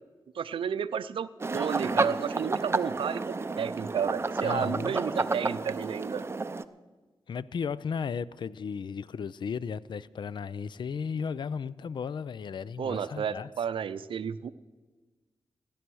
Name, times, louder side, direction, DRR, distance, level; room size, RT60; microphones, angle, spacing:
voice 1, 0.3-6.2 12.8-14.5, right 7 dB, 85° right, 0.5 m, -32 dB
sound 1, 1.4-6.6, right 3 dB, 30° right, 0.5 m, -31 dB
voice 2, 4.4-5.0 7.3-13.5, left 6 dB, 60° left, 0.4 m, -35 dB
15.5 x 10.0 x 6.2 m
cardioid pair, 80°, 9 cm